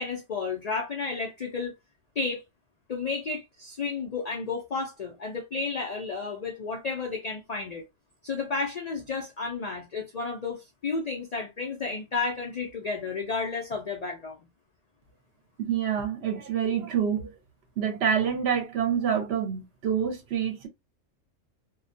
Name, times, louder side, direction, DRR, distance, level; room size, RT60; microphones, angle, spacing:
voice 1, 0.0-1.7 2.2-2.4 2.9-7.9 8.2-14.4, left 4 dB, 75° left, 0.3 m, -32 dB
voice 2, 15.6-17.3 17.8-20.7, right 8 dB, 65° right, 0.8 m, -27 dB
2.3 x 2.1 x 2.5 m
omnidirectional pair, 1.3 m